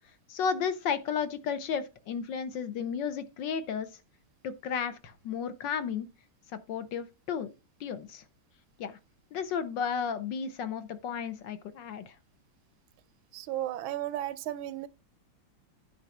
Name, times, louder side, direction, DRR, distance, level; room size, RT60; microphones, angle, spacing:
voice 1, 0.3-3.9 4.4-6.1 6.5-7.5 7.8-8.2 8.8-9.0 9.3-12.2, left 7 dB, 65° left, 1.4 m, -33 dB
voice 2, 13.3-14.9, right 13 dB, 75° right, 1.3 m, -34 dB
10.5 x 3.9 x 5.9 m
omnidirectional pair, 2.4 m